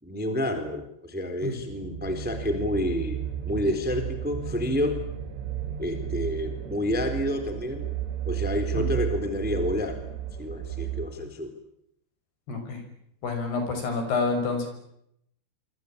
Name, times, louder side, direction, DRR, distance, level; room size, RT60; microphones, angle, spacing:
voice 1, 0.0-3.2 3.4-5.0 5.8-7.9 8.2-10.0 10.4-11.5, left 1 dB, ahead, 7 dB, 3.0 m, -29 dB
sound 1, 1.6-11.1, right 10 dB, 90° right, 5.2 m, -33 dB
voice 2, 12.5-12.8 13.2-14.7, left 3 dB, 60° left, 5 dB, 7.9 m, -28 dB
26.0 x 26.0 x 8.7 m, 0.76 s
omnidirectional pair, 5.3 m